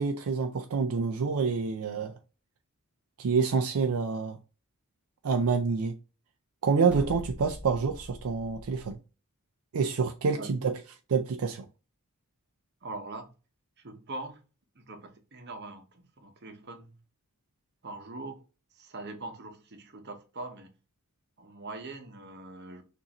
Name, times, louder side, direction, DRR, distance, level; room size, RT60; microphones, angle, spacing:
voice 1, 0.0-2.2 3.2-4.4 5.2-5.9 6.6-9.0 9.7-10.8 11.1-11.7, right 5 dB, 70° right, 0.4 m, -27 dB
sound 1, 6.9-9.0, left 1 dB, 5° right, 0.8 m, -42 dB
voice 2, 12.8-13.3 13.8-14.4 14.8-16.9 17.8-18.4 18.8-20.7 21.4-22.8, right 2 dB, 50° right, 0.9 m, -42 dB
6.4 x 2.6 x 2.9 m
head